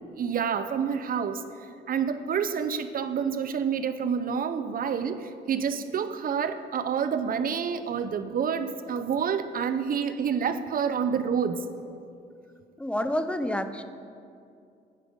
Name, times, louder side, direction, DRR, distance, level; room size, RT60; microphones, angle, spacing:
voice 1, 0.1-1.5 1.9-11.6, right 7 dB, 45° right, 10 dB, 0.5 m, -28 dB
voice 2, 12.8-13.8, left 1 dB, 5° left, 10 dB, 0.4 m, -28 dB
9.7 x 5.0 x 5.3 m, 2.5 s
cardioid pair, 90°, 20 cm